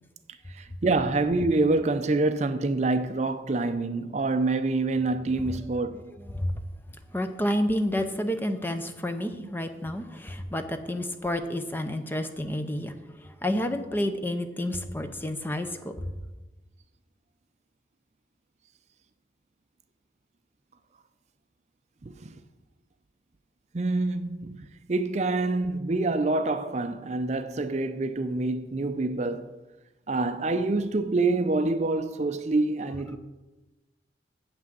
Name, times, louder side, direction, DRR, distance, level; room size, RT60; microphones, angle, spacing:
voice 1, 0.5-6.0 9.4-9.5 22.0-22.3 23.7-29.5 30.1-33.2, right 2 dB, 40° right, 0.5 m, -26 dB
voice 2, 6.1-6.5 7.1-16.1, left 1 dB, 10° left, 0.6 m, -30 dB
8.0 x 6.1 x 7.5 m
head